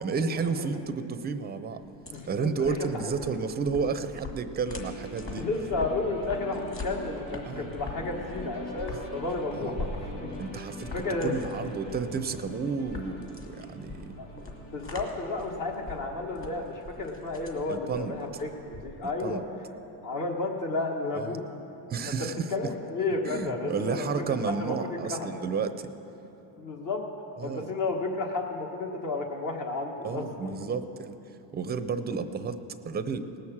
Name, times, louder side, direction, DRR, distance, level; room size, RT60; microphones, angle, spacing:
voice 1, 0.0-1.8 2.3-5.5 7.4-7.6 9.5-9.8 10.4-14.1 17.3-17.4 17.7-18.1 19.0-19.4 21.1-21.4 21.9-22.7 23.2-25.9 27.4-27.7 30.0-31.2 31.5-33.2, right 5 dB, 20° right, 10 dB, 0.6 m, -32 dB
sound 1, 1.8-19.3, left 3 dB, 25° left, 2.2 m, -42 dB
voice 2, 2.1-2.7 5.4-10.3 10.9-11.3 14.2-14.5 14.7-19.4 20.0-21.4 22.5-24.1 24.5-25.3 26.6-27.1 27.4-30.3, left 3 dB, 45° left, 1 dB, 1.7 m, -32 dB
sound 2, 4.7-18.5, equal, 85° left, 3.0 m, -44 dB
18.5 x 6.4 x 7.3 m, 3.0 s
supercardioid pair, 110°, 44 cm